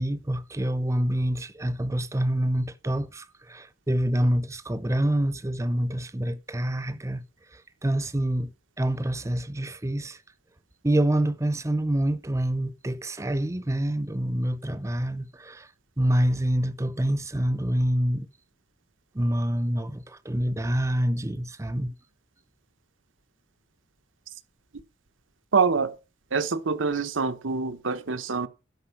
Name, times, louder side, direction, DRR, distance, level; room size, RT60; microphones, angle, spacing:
voice 1, 0.0-7.2 7.5-8.5 8.8-10.2 10.8-15.7 16.0-18.3 19.1-21.9, right 1 dB, 15° right, 0.6 m, -26 dB
voice 2, 25.5-25.9 26.3-28.5, right 5 dB, 90° right, 1.0 m, -25 dB
11.5 x 5.4 x 5.8 m
head